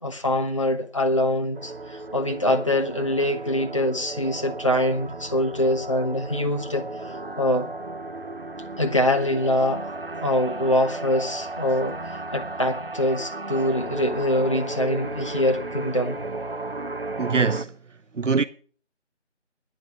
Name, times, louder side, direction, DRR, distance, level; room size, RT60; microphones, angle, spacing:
voice 1, 0.0-7.7 8.8-9.9 10.2-16.2, left 1 dB, 25° left, 0.8 m, -24 dB
sound 1, 1.5-17.7, right 2 dB, 50° right, 1.0 m, -34 dB
voice 2, 17.2-17.7 18.1-18.4, right 5 dB, 90° right, 0.8 m, -22 dB
12.0 x 10.0 x 6.0 m
figure-of-eight pair, 165°, 36 cm